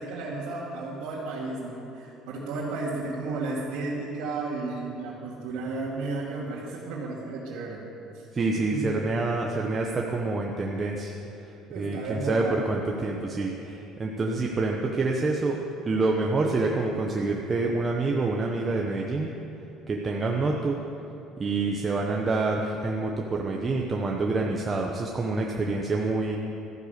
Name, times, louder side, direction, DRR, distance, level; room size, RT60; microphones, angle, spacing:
voice 1, 0.0-7.8 8.1-8.2 8.7-8.9 11.7-12.6, right 3 dB, 85° right, -6 dB, 2.2 m, -33 dB
voice 2, 8.3-11.1 11.7-15.6 15.9-19.3 19.9-20.8 21.4-26.4, right 3 dB, 20° right, 0 dB, 0.9 m, -27 dB
13.5 x 10.0 x 6.5 m, 3.0 s
cardioid pair, 155°, 0 cm